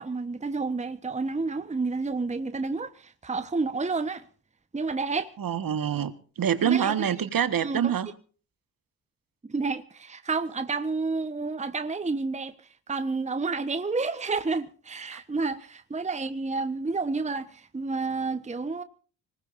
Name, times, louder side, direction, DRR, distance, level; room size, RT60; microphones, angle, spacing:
voice 1, 0.0-4.2 4.7-5.3 6.7-7.1 7.6-7.9 9.5-12.5 12.9-18.8, right 4 dB, 15° right, 1.1 m, -30 dB
voice 2, 5.4-8.1 15.1-15.2, right 8 dB, 45° right, 1.6 m, -26 dB
26.0 x 19.0 x 2.6 m
figure-of-eight pair, 40°, 49 cm